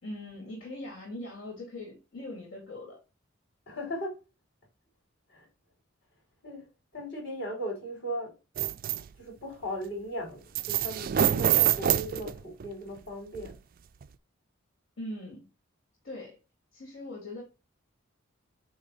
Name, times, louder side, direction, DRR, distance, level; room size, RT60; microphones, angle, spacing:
voice 1, 0.0-3.0 15.0-15.5 16.0-16.4 16.7-17.4, left 1 dB, 75° left, 3.0 m, -41 dB
voice 2, 3.7-4.2 5.3-5.5 6.4-6.7 6.9-8.3 9.2-13.6, equal, 60° left, 4.2 m, -37 dB
sound 1, 8.6-9.0 10.6-12.7 13.4-13.5 14.0-14.1, right 10 dB, 45° right, 0.3 m, -26 dB
8.7 x 3.2 x 4.1 m
head